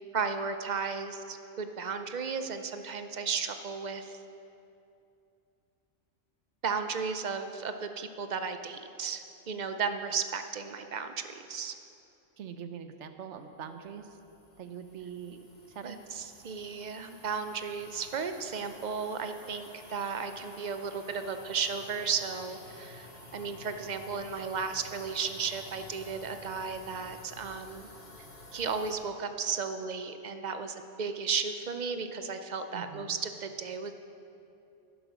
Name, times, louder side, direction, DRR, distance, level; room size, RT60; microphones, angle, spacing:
voice 1, 0.1-4.2 6.6-11.7 15.8-27.9 28.5-33.9, right 5 dB, 45° right, 8 dB, 0.6 m, -34 dB
voice 2, 12.4-14.1 14.6-15.4 15.7-16.0 32.7-33.1, right 7 dB, 70° right, 8 dB, 1.0 m, -43 dB
sound 1, 13.8-28.9, left 1 dB, 50° left, 1.7 m, -51 dB
10.5 x 10.5 x 6.1 m, 2.7 s
omnidirectional pair, 1.3 m